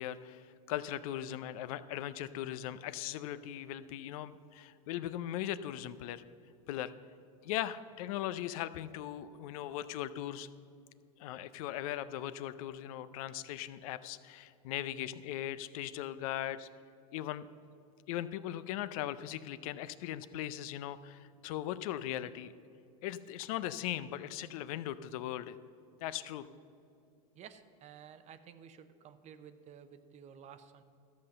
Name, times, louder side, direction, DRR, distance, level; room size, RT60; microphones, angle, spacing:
voice 1, 0.0-6.2 6.7-6.9 7.4-10.5 11.2-16.7 17.1-17.5 18.1-22.5 23.0-25.6 26.0-26.5, left 12 dB, 65° left, 14 dB, 0.5 m, -39 dB
voice 2, 27.3-30.8, right 8 dB, 35° right, 11 dB, 0.7 m, -53 dB
13.0 x 5.7 x 6.5 m, 2.5 s
hypercardioid pair, 110°, 20 cm